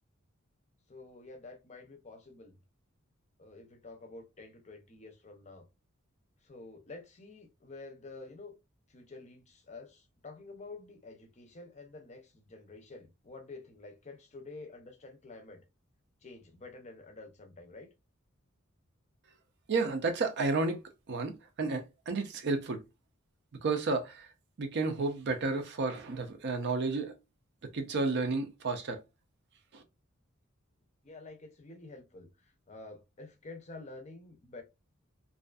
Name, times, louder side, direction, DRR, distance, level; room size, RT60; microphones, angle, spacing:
voice 1, 0.9-2.6 3.4-5.7 6.4-8.6 8.9-15.6 16.2-17.9 31.0-34.6, left 3 dB, 35° left, 0.5 m, -49 dB
voice 2, 19.7-20.8 21.1-22.8 23.6-24.3 24.6-27.1 27.7-29.0 29.7-29.8, right 3 dB, 55° right, 0.5 m, -31 dB
2.5 x 2.4 x 2.2 m
head